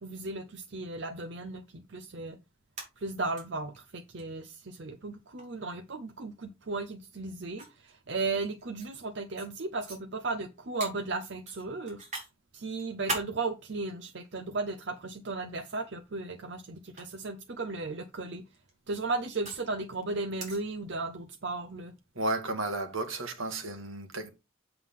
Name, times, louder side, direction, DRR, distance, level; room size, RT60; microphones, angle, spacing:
voice 1, 0.0-2.4 3.0-12.0 12.5-18.4 18.9-21.9, right 3 dB, 60° right, 0.7 m, -35 dB
sound 1, 2.6-3.4 3.7-3.8 4.2-4.3 5.4-5.6 6.7-6.8 7.6-8.9 9.4-9.5 9.9-10.0 10.8-10.9 11.5-12.3 12.7-13.3 14.2-14.9 15.9-16.2 16.8-17.0 18.4-19.7 20.4-20.6, right 2 dB, 35° right, 3.7 m, -38 dB
voice 2, 22.1-24.3, right 2 dB, 80° right, 1.7 m, -33 dB
7.8 x 7.4 x 3.7 m
head